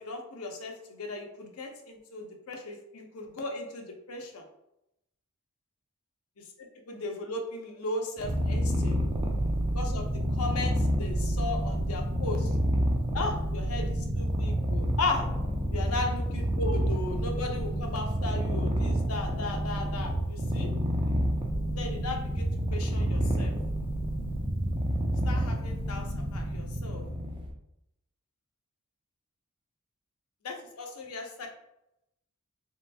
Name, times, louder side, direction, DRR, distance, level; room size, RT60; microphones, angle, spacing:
voice 1, 0.0-4.4 6.6-9.0 9.7-10.1 10.4-12.5 13.1-15.2 15.7-20.7 21.7-23.5 25.2-26.1 26.3-27.0 30.4-31.5, left 2 dB, 85° left, 2 dB, 0.6 m, -36 dB
Purr, 8.2-27.5, equal, 25° right, 0.4 m, -29 dB
3.2 x 2.9 x 2.2 m, 0.84 s
head